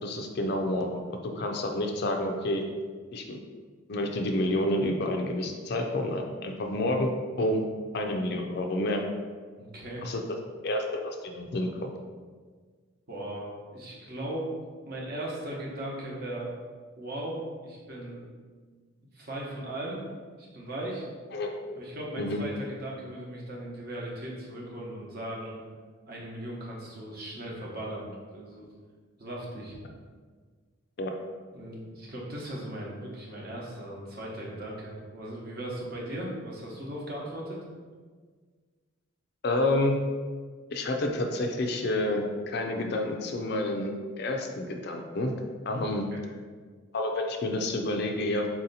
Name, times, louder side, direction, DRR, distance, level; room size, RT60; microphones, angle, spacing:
voice 1, 0.0-2.6 3.1-3.4 3.9-7.1 7.4-7.6 7.9-9.0 10.0-10.2 10.6-11.9 21.3-21.5 22.2-22.4 31.0-31.1 39.4-40.0 40.7-43.9 44.2-45.3 45.7-46.0 46.9-48.5, left 1 dB, 50° left, 3 dB, 0.4 m, -29 dB
voice 2, 9.6-10.1 13.1-14.5 14.8-16.6 17.0-18.2 19.1-20.0 20.4-21.1 21.7-25.6 26.1-28.7 29.2-29.8 31.5-37.6 45.7-45.8 46.1-46.2, right 1 dB, 45° right, -3 dB, 0.9 m, -38 dB
4.3 x 2.8 x 4.0 m, 1.5 s
head